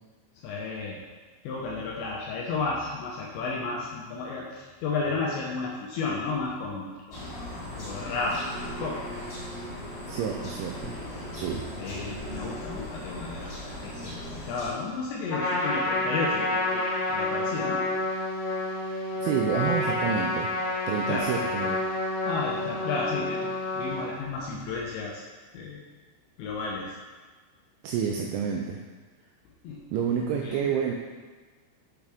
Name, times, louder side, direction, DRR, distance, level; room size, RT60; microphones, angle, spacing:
voice 1, 0.4-1.0 1.4-7.3 7.8-9.0 11.8-17.8 21.1-21.3 22.3-25.2 25.5-25.8 26.4-27.0 29.6-29.8 30.4-30.6, left 4 dB, 80° left, -3 dB, 2.7 m, -33 dB
sound 1, 7.1-14.7, left 1 dB, 30° left, 1.8 m, -38 dB
voice 2, 10.1-10.9 11.3-11.6 19.2-20.5 20.9-21.8 27.8-28.8 29.9-30.9, right 7 dB, 85° right, 1 dB, 2.7 m, -29 dB
Trumpet, 15.3-24.1, left 2 dB, 50° left, 1.5 m, -29 dB
8.7 x 6.6 x 3.5 m, 1.4 s
omnidirectional pair, 6.0 m